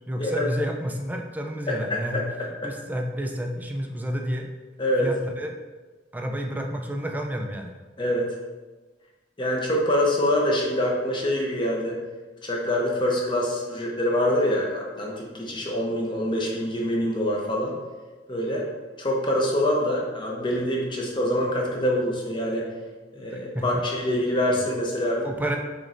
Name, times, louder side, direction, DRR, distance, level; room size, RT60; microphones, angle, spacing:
voice 1, 0.1-2.3 2.6-4.5 5.0-5.5 6.1-7.7 23.2-23.6 25.2-25.6, equal, 10° right, 3 dB, 0.4 m, -30 dB
voice 2, 1.7-2.2 2.6-2.7 4.8-5.1 8.0-8.3 9.4-12.0 12.4-17.8 18.3-18.6 19.0-22.7 23.1-25.3, left 1 dB, 25° left, -2 dB, 0.8 m, -25 dB
6.3 x 3.2 x 2.6 m, 1.3 s
head